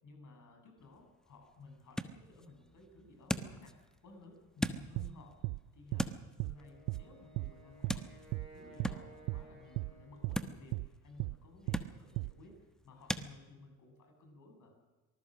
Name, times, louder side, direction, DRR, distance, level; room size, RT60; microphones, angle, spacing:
voice 1, 0.0-6.2 6.4-8.1 8.3-14.8, left 3 dB, 40° left, 4 dB, 7.5 m, -56 dB
sound 1, 0.8-13.3, equal, ahead, 1.2 m, -43 dB
sound 2, 4.9-5.1 5.4-5.6 5.9-6.1 6.4-6.6 6.9-7.0 7.4-7.5 7.8-8.0 8.3-8.5 8.8-9.0 9.3-9.4 9.7-9.9 10.2-10.4 10.7-10.9 11.2-11.4 11.7-11.8 12.2-12.3, right 21 dB, 50° right, 0.6 m, -36 dB
Wind instrument woodwind instrument, 6.5-10.8, right 1 dB, 90° left, 4.7 m, -58 dB
24.5 x 19.5 x 6.4 m, 1.2 s
figure-of-eight pair, 60°, 45 cm